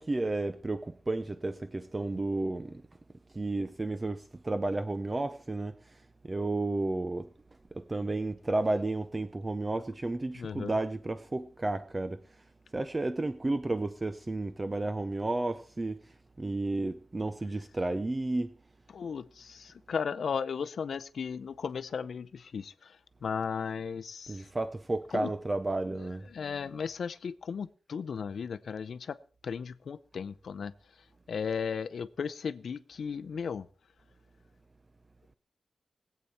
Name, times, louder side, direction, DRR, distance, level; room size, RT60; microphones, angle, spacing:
voice 1, 0.0-2.8 3.3-6.0 6.2-7.3 7.7-12.2 12.7-16.0 16.4-18.5 24.3-26.3, right 2 dB, 20° right, 0.5 m, -32 dB
voice 2, 10.3-10.7 18.9-22.9 23.2-24.4 25.1-25.3 26.3-29.2 29.4-30.7 31.3-33.7, left 6 dB, 70° left, 0.6 m, -35 dB
20.5 x 8.5 x 4.3 m
wide cardioid pair, 160°, 0 cm